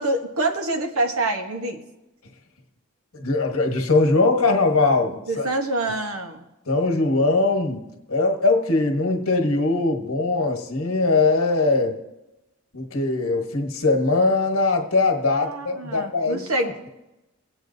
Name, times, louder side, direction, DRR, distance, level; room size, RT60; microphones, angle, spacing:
voice 1, 0.0-1.8 5.3-6.4 15.3-16.7, right 2 dB, 85° right, 5 dB, 1.1 m, -26 dB
voice 2, 3.1-5.5 6.7-12.0 12.7-16.4, left 3 dB, 80° left, 2 dB, 1.3 m, -21 dB
18.0 x 8.1 x 2.7 m, 0.96 s
head